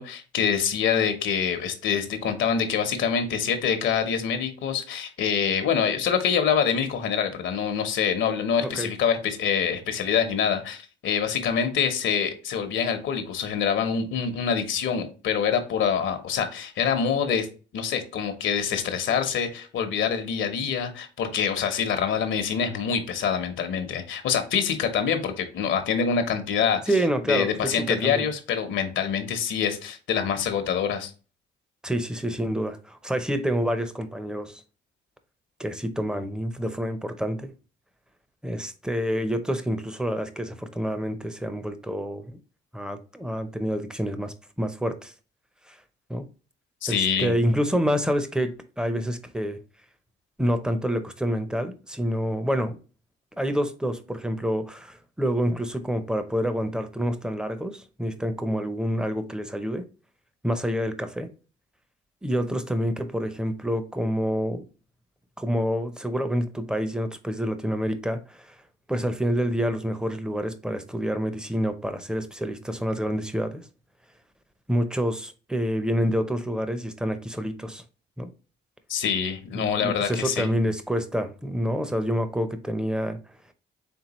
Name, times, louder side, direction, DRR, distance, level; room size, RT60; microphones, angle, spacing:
voice 1, 0.0-17.5 17.7-26.9 27.3-31.1 46.8-47.3 78.9-80.5, left 7 dB, 75° left, 0.9 m, -25 dB
voice 2, 8.6-8.9 26.9-28.3 31.8-34.6 35.6-37.5 38.4-42.4 42.7-45.1 45.7-45.8 46.1-46.2 46.9-49.6 50.4-52.8 53.4-59.8 60.4-61.3 62.2-64.6 65.4-68.6 68.9-73.6 74.7-77.8 78.2-78.3 79.5-83.2, equal, 5° right, 0.6 m, -27 dB
4.5 x 3.5 x 3.0 m
cardioid pair, 90°, 20 cm